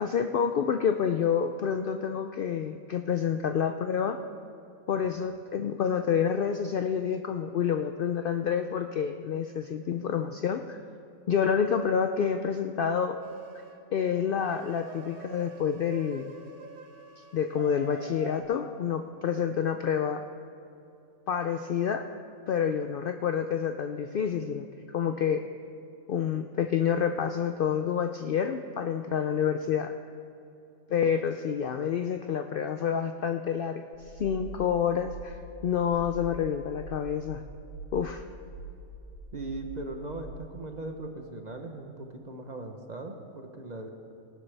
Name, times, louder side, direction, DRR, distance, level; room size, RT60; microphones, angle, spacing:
voice 1, 0.0-4.2 4.9-10.8 11.3-13.2 13.9-16.3 17.3-20.2 21.3-22.1 22.5-24.7 24.9-25.5 26.1-29.9 30.9-33.8 34.2-35.4 35.6-37.4 37.9-38.2, left 7 dB, 80° left, 7 dB, 0.4 m, -28 dB
sound 1, 13.2-13.8 14.4-18.4, right 2 dB, 85° right, 1.5 m, -46 dB
sound 2, 33.9-40.3, right 3 dB, 30° left, 3.6 m, -44 dB
voice 2, 39.3-43.9, right 2 dB, 35° right, 4 dB, 0.9 m, -39 dB
19.0 x 11.5 x 3.4 m, 2.7 s
omnidirectional pair, 1.5 m